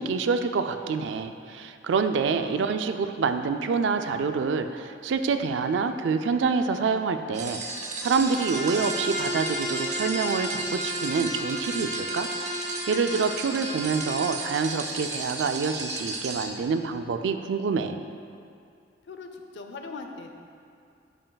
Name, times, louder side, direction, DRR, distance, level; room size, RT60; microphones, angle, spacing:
voice 1, 0.0-7.6 8.0-12.3 12.9-18.0, right 5 dB, 75° right, 8 dB, 0.4 m, -27 dB
sound 1, 7.3-16.4, right 3 dB, 40° right, 0.8 m, -35 dB
Bowed string instrument, 8.2-14.4, left 1 dB, 55° right, 1.4 m, -33 dB
voice 2, 19.1-20.3, left 4 dB, 70° left, 4 dB, 0.6 m, -40 dB
10.5 x 5.5 x 2.3 m, 2.4 s
head